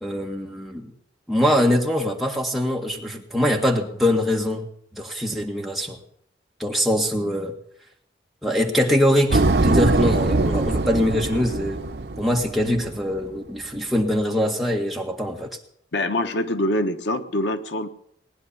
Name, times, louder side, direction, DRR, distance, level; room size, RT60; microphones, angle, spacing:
voice 1, 0.0-0.9 1.3-6.0 6.6-7.5 8.4-11.8 12.2-15.5, equal, ahead, 0 dB, 1.8 m, -23 dB
sound 1, 9.3-13.0, right 2 dB, 60° right, 0.7 m, -22 dB
voice 2, 15.9-17.9, left 1 dB, 80° left, 7 dB, 1.2 m, -24 dB
19.5 x 10.5 x 7.1 m, 0.66 s
head